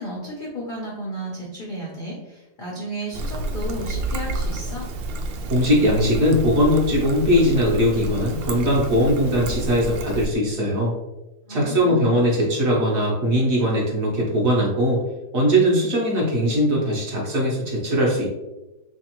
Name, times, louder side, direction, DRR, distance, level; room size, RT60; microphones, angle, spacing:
voice 1, 0.0-4.9 11.5-12.1, right 1 dB, 85° left, -3 dB, 0.4 m, -33 dB
Trickle dribble, 3.1-10.3, right 2 dB, 85° right, 1.3 m, -29 dB
voice 2, 5.5-10.9 11.5-15.0 15.3-18.3, equal, 55° right, -3 dB, 1.1 m, -20 dB
3.5 x 3.3 x 2.9 m, 1.0 s
omnidirectional pair, 2.0 m